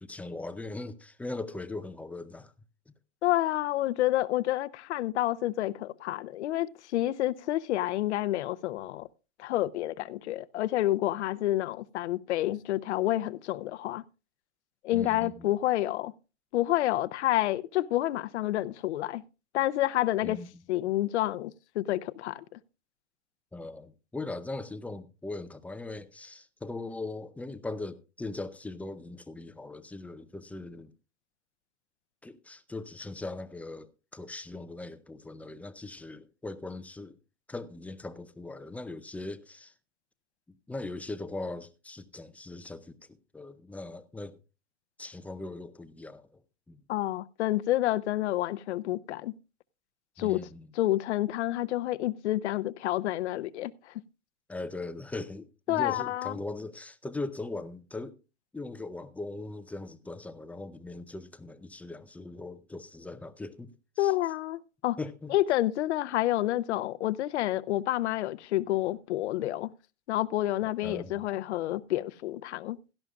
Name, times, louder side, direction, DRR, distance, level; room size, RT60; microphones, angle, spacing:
voice 1, 0.0-2.5 14.9-15.5 20.2-20.5 23.5-30.9 32.2-37.2 37.5-39.7 40.7-44.4 45.0-46.4 46.7-46.8 50.2-50.7 54.5-58.2 58.5-64.1 65.0-65.3 70.6-71.3, left 2 dB, 5° left, 0.5 m, -40 dB
voice 2, 3.2-9.1 9.4-14.0 14.8-16.1 16.5-19.2 19.5-20.4 20.7-22.6 46.9-49.3 50.2-50.4 50.8-53.9 55.7-56.4 64.0-65.0 65.3-69.7 70.1-72.8, left 15 dB, 65° left, 0.8 m, -29 dB
17.0 x 12.5 x 2.4 m
hypercardioid pair, 115°, 37 cm